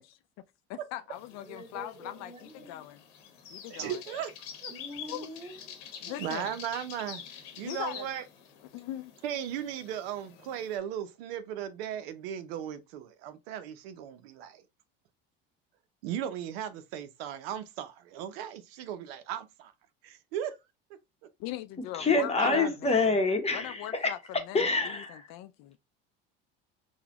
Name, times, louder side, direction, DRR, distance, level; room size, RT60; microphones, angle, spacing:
voice 1, 0.7-3.0 3.5-4.0 5.1-5.3 6.0-6.5 7.6-8.1 8.7-9.1 21.4-23.2 23.5-25.8, left 12 dB, 60° left, 0.5 m, -40 dB
sound 1, 1.1-10.8, left 8 dB, 75° left, 0.9 m, -47 dB
voice 2, 1.4-2.9 3.8-3.9 4.7-6.1, right 1 dB, 20° right, 1.8 m, -46 dB
voice 3, 3.7-4.3 4.6-4.7 6.0-7.2 7.6-8.2 9.2-14.6 16.0-19.7 20.0-20.6 20.9-21.0 22.4-22.7, right 10 dB, 75° right, 0.6 m, -36 dB
voice 4, 22.0-24.1 24.5-25.3, left 3 dB, 20° left, 0.8 m, -26 dB
3.9 x 2.2 x 2.8 m
supercardioid pair, 85°, 30 cm